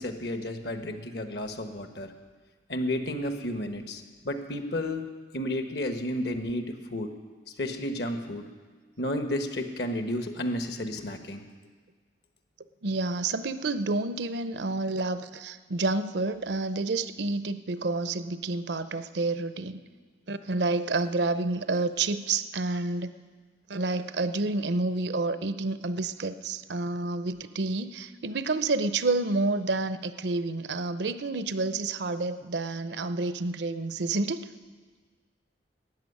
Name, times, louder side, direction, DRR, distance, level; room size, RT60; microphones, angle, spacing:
voice 1, 0.0-2.1 2.7-7.1 7.6-8.5 9.0-11.4, left 1 dB, 65° left, 7 dB, 1.2 m, -32 dB
voice 2, 12.8-19.8 20.3-23.1 23.7-34.4, right 3 dB, 70° right, 12 dB, 0.6 m, -29 dB
13.5 x 8.7 x 9.7 m, 1.5 s
head